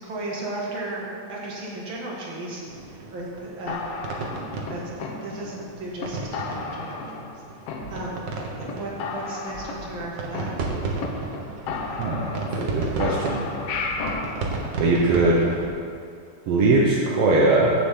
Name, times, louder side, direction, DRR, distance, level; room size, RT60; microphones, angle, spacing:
voice 1, 0.0-3.9 4.7-7.4 7.9-8.3 8.6-10.6, right 2 dB, 40° right, -4 dB, 2.3 m, -35 dB
sound 1, 2.7-15.7, right 3 dB, 90° right, 0.9 m, -34 dB
sound 2, 3.7-5.6 6.0-6.1 6.3-7.4 7.7-8.4 8.7-8.8 9.0-11.1 11.3-11.4 11.7-12.7 13.0-14.3, left 4 dB, 75° left, 1.4 m, -33 dB
voice 2, 12.0-12.3 12.6-13.5 14.8-15.5 16.5-17.7, right 2 dB, 65° right, -4 dB, 1.5 m, -20 dB
16.5 x 7.0 x 3.8 m, 2.5 s
omnidirectional pair, 3.8 m